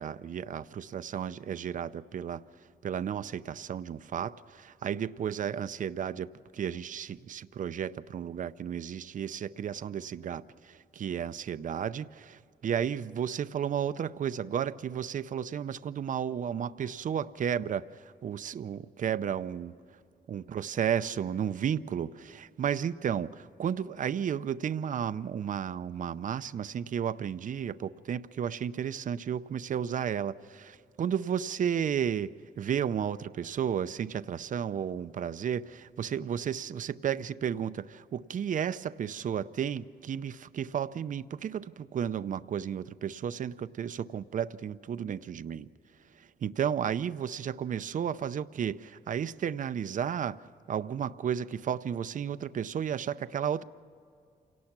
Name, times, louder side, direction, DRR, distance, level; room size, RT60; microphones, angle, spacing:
voice 1, 0.0-2.4 2.8-6.3 6.5-19.7 20.3-45.7 46.4-50.4 50.7-53.6, right 8 dB, 50° right, 0.6 m, -33 dB
28.5 x 18.5 x 6.0 m
wide cardioid pair, 135°, 17 cm